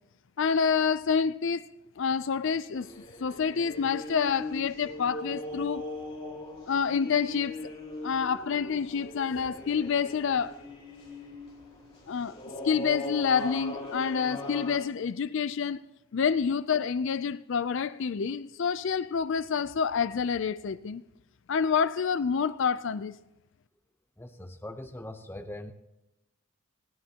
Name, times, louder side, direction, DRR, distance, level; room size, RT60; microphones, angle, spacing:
voice 1, 0.4-1.6 2.0-2.9 3.2-5.8 6.7-7.6 8.0-10.5 12.1-12.3 12.6-15.8 16.1-21.0 21.5-23.1, left 6 dB, 55° left, 0.4 m, -28 dB
sound 1, 2.7-14.8, left 2 dB, 25° left, 3.9 m, -39 dB
voice 2, 24.2-25.7, left 1 dB, 10° left, 0.7 m, -41 dB
26.5 x 11.0 x 2.9 m
head